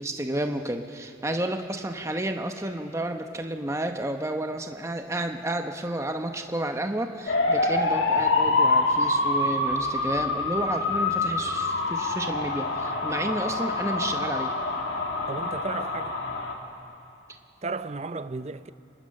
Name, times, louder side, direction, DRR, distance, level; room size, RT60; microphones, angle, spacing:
voice 1, 0.0-14.5, right 1 dB, 15° right, 1.0 m, -31 dB
sound 1, 7.3-16.5, left 3 dB, 65° left, 2.1 m, -26 dB
voice 2, 15.3-16.2 17.6-18.7, right 3 dB, 35° right, 0.5 m, -34 dB
29.0 x 23.5 x 6.6 m
head